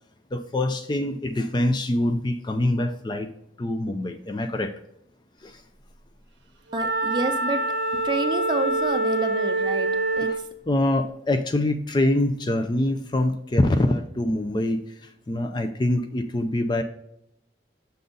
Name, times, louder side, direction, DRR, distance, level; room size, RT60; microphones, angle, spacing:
voice 1, 0.3-3.3 3.6-4.7 5.4-5.6 10.3-10.4 10.7-16.8, left 1 dB, 25° left, 7 dB, 0.4 m, -24 dB
voice 2, 6.7-7.7 8.0-10.5, right 2 dB, 25° right, 6 dB, 0.5 m, -29 dB
Wind instrument woodwind instrument, 6.7-10.5, right 2 dB, 65° right, 0.7 m, -25 dB
6.8 x 3.9 x 3.8 m, 0.80 s
head